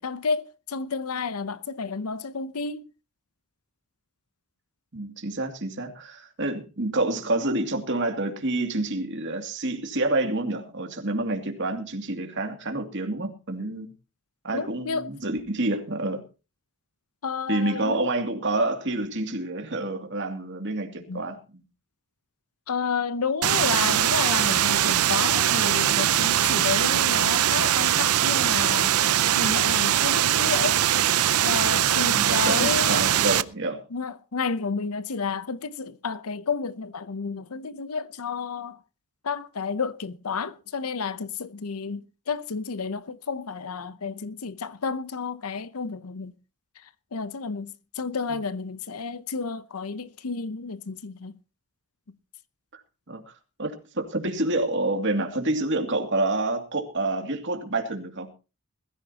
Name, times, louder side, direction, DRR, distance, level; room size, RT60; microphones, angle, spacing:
voice 1, 0.0-2.8 14.5-15.1 17.2-18.1 21.1-21.2 22.7-29.0 29.3-30.8 31.4-33.0 33.9-38.8 39.2-46.3 46.8-51.3, left 5 dB, 80° left, 0.8 m, -31 dB
voice 2, 4.9-13.9 14.4-16.2 17.5-21.6 32.1-33.8 48.3-48.4 52.7-52.8 53.1-53.3 53.6-58.3, right 2 dB, 55° right, 2.5 m, -28 dB
sound 1, 23.4-33.4, right 11 dB, 85° right, 0.6 m, -22 dB
21.0 x 14.0 x 2.9 m
head